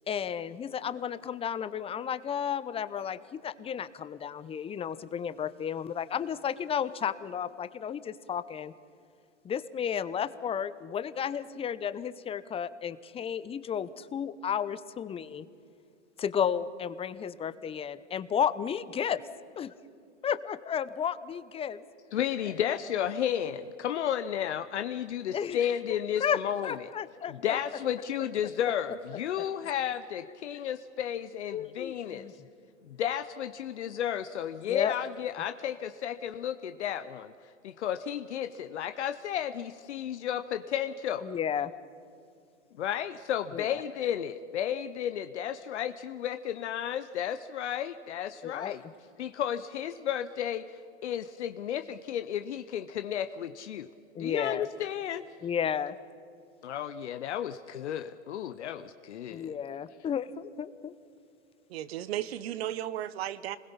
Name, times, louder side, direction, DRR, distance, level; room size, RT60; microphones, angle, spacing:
voice 1, 0.1-8.7 9.4-15.5 16.2-19.2 19.6-19.7 20.2-21.9 25.3-25.6 25.9-27.6 30.3-30.4 31.5-32.3 34.7-35.0 41.2-41.7 43.5-43.8 48.4-48.7 54.1-54.7 55.4-56.0 59.3-60.9, left 8 dB, 15° left, 15 dB, 0.7 m, -33 dB
voice 2, 22.1-26.7 27.3-32.3 32.9-37.3 37.6-41.3 42.8-48.8 49.2-53.9 54.2-55.2 56.6-59.5, left 10 dB, 70° left, 9 dB, 0.9 m, -33 dB
voice 3, 61.7-63.6, right 12 dB, 60° right, 16 dB, 1.1 m, -34 dB
27.5 x 21.0 x 5.7 m, 2.5 s
hypercardioid pair, 110°, 35 cm